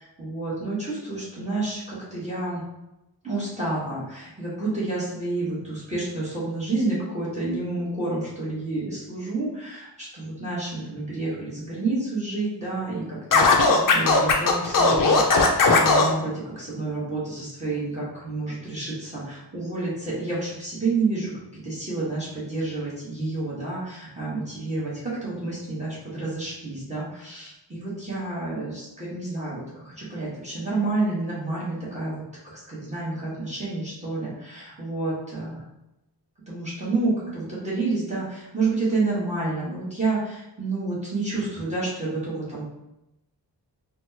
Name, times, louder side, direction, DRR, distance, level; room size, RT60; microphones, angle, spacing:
voice 1, 0.2-2.6 3.2-13.0 13.7-32.2 32.5-35.6 36.5-42.6, right 3 dB, 15° right, -8 dB, 1.1 m, -29 dB
Scratching (performance technique), 13.3-16.1, left 4 dB, 50° left, 0.5 m, -17 dB
4.2 x 2.1 x 2.7 m, 0.91 s
wide cardioid pair, 145°, 42 cm